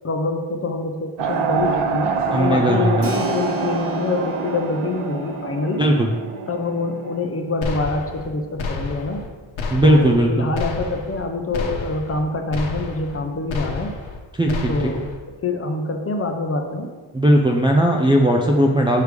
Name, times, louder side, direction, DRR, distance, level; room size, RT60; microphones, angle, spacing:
voice 1, 0.0-5.9 6.5-9.3 9.8-14.0 14.7-16.9, left 3 dB, 30° left, 4 dB, 0.7 m, -25 dB
sound 1, 1.2-7.2, right 5 dB, 80° right, 0.8 m, -26 dB
voice 2, 2.3-3.1 5.8-6.1 9.7-10.5 14.4-14.9 17.1-19.0, right 1 dB, 10° right, -1 dB, 0.4 m, -17 dB
Keyboard (musical), 3.0-11.4, right 2 dB, 25° right, 1.1 m, -37 dB
sound 2, 7.6-8.3 8.6-9.3 9.6-10.3 10.5-11.2 11.5-12.2 12.5-13.2 13.5-14.2 14.5-15.2, left 4 dB, 65° left, 1.1 m, -30 dB
6.7 x 3.4 x 4.7 m, 1.4 s
cardioid pair, 100°, 50 cm